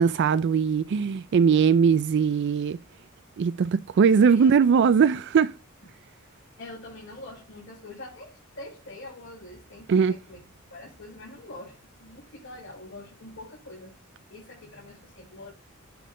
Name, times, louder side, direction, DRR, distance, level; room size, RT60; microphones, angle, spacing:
voice 1, 0.0-2.8 3.4-5.5 9.9-10.2, right 6 dB, 55° right, 0.3 m, -20 dB
voice 2, 4.2-4.5 6.6-10.4 10.7-14.0 14.3-15.5, left 2 dB, 60° left, 4.9 m, -44 dB
9.3 x 4.2 x 3.8 m
head